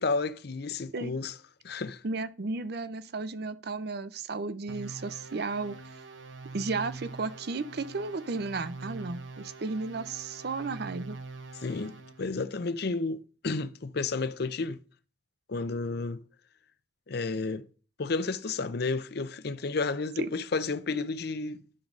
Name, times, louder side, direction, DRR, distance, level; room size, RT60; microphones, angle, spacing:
voice 1, 0.0-1.3 1.6-2.0 11.6-14.8 15.5-16.2 17.1-17.7 18.0-21.6, left 3 dB, 60° left, 0.6 m, -31 dB
voice 2, 2.0-5.8 6.5-11.2 20.2-20.3, right 3 dB, 60° right, 0.6 m, -34 dB
sound 1, 4.7-12.2, right 3 dB, 90° right, 1.0 m, -44 dB
10.0 x 3.9 x 6.0 m
head